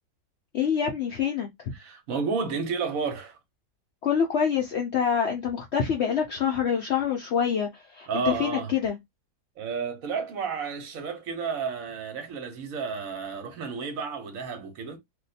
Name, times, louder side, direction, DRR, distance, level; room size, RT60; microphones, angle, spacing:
voice 1, 0.5-1.7 4.0-9.0, left 7 dB, 65° left, 0.6 m, -26 dB
voice 2, 1.7-3.4 8.1-8.7 9.6-15.0, right 5 dB, 65° right, 1.1 m, -31 dB
2.6 x 2.1 x 4.0 m
omnidirectional pair, 1.7 m